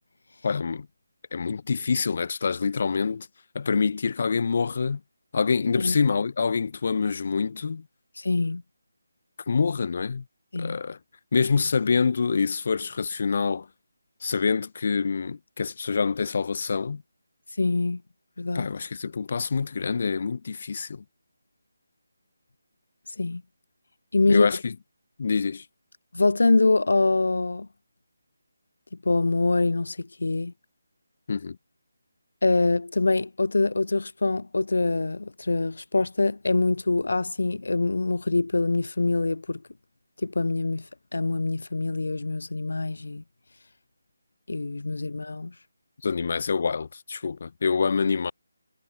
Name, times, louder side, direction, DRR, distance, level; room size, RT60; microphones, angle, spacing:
voice 1, 0.4-0.9 1.3-3.3 3.5-5.0 5.3-7.8 9.5-10.2 10.6-11.0 11.3-13.7 14.2-17.0 18.5-21.0 24.3-24.7 25.2-25.6 31.3-31.6 46.0-48.3, left 5 dB, 35° left, 2.9 m, -26 dB
voice 2, 8.2-8.6 10.5-10.8 17.6-18.0 18.4-18.7 23.2-23.4 24.1-24.5 26.1-27.7 29.1-30.5 32.4-39.6 40.2-40.8 41.1-43.2 44.5-45.5, left 3 dB, 70° left, 2.3 m, -24 dB
figure-of-eight pair, 180°, 0 cm